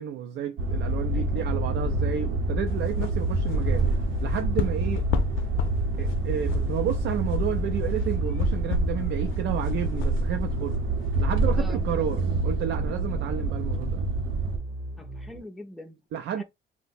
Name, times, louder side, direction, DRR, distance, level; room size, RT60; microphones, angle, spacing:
voice 1, 0.0-3.9 4.2-5.1 6.0-10.8 11.2-14.0 16.1-16.4, right 9 dB, 65° right, 0.4 m, -31 dB
sound 1, 0.6-14.6, right 2 dB, 85° right, 0.8 m, -27 dB
voice 2, 1.1-1.6 11.5-11.9 15.0-16.0 16.4-16.5, left 1 dB, ahead, 0.4 m, -43 dB
sound 2, 1.7-15.4, equal, 15° right, 0.8 m, -36 dB
sound 3, 2.7-11.2, left 4 dB, 70° left, 0.5 m, -33 dB
2.8 x 2.1 x 4.1 m
cardioid pair, 180°, 21 cm